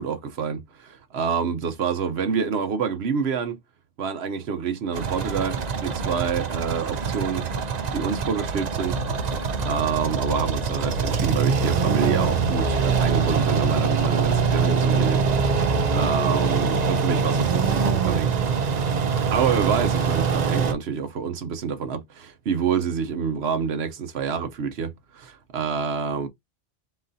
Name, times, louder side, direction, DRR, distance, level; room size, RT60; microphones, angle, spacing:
voice 1, 0.0-3.6 4.0-7.4 7.9-9.0 9.6-15.2 15.5-18.3 19.3-26.3, right 6 dB, 90° right, 1.1 m, -27 dB
sound 1, 4.9-20.7, right 6 dB, 45° right, 0.7 m, -24 dB
sound 2, 8.8-17.0, left 2 dB, 35° left, 0.8 m, -34 dB
4.1 x 4.0 x 2.7 m
omnidirectional pair, 1.0 m